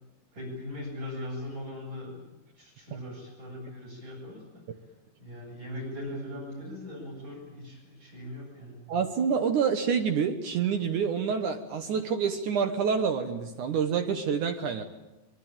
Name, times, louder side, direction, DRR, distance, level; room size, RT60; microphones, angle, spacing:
voice 1, 0.3-4.8 5.2-8.8, left 1 dB, 45° right, 1 dB, 9.4 m, -40 dB
voice 2, 8.9-14.8, right 6 dB, 65° right, 7 dB, 2.4 m, -27 dB
25.0 x 23.5 x 8.9 m, 0.98 s
omnidirectional pair, 4.4 m